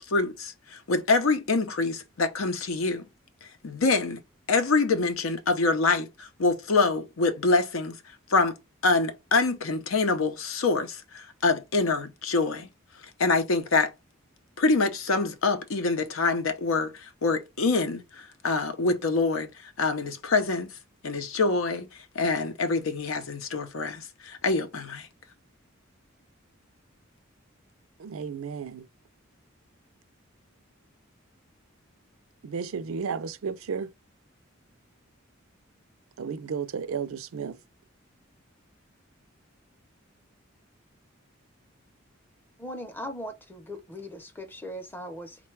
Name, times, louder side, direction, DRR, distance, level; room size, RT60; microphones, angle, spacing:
voice 1, 0.0-3.1 3.6-4.2 4.5-8.0 8.3-8.5 8.8-12.7 13.2-13.9 14.6-19.5 19.8-20.7 21.0-21.9 22.1-25.1, left 3 dB, 80° left, 0.7 m, -25 dB
voice 2, 28.0-28.9 32.4-33.9 36.2-37.6, right 6 dB, 80° right, 0.4 m, -33 dB
voice 3, 42.6-45.5, equal, 10° left, 0.6 m, -39 dB
3.8 x 2.2 x 4.5 m
head